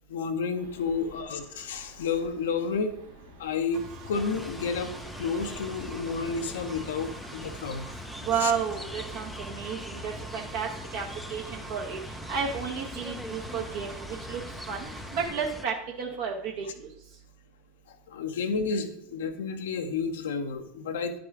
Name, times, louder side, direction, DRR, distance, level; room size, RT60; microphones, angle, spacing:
voice 1, 0.1-2.9 3.4-4.9 5.2-7.9 8.4-8.5 18.1-21.2, left 5 dB, 80° left, 6 dB, 0.7 m, -31 dB
sound 1, 0.5-9.4, right 1 dB, 85° right, 1.6 m, -52 dB
Engine, 3.7-15.3, right 2 dB, 50° right, 2.0 m, -44 dB
sound 2, 4.1-15.7, left 1 dB, 10° left, 0.4 m, -42 dB
voice 2, 8.2-11.0 11.3-12.0 12.3-14.4 14.7-14.9 15.1-16.9, right 6 dB, 65° right, -1 dB, 1.1 m, -32 dB
9.7 x 4.9 x 3.6 m, 0.72 s
hypercardioid pair, 95°, 0 cm